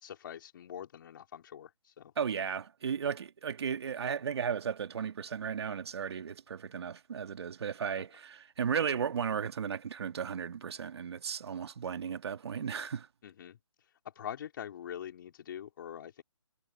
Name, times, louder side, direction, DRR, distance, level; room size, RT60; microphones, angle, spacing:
voice 1, 0.0-2.1 13.2-13.6 14.2-16.2, left 9 dB, 40° left, 4.1 m, -44 dB
voice 2, 2.2-13.1, right 7 dB, 55° right, 1.9 m, -35 dB
hypercardioid pair, 155°, 17 cm